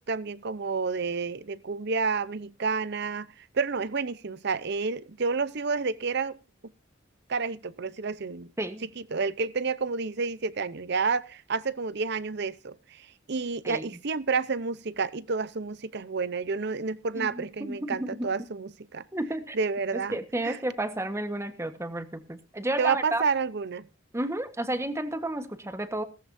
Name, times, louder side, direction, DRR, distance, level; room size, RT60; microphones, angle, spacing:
voice 1, 0.0-3.3 3.5-6.4 7.3-8.5 9.0-19.0 19.5-20.2 20.4-20.6 22.8-23.9, right 4 dB, 60° right, 0.7 m, -30 dB
voice 2, 17.1-18.3 19.1-19.6 19.9-23.2 24.1-26.0, right 1 dB, 15° right, 1.3 m, -32 dB
16.5 x 14.5 x 2.7 m
head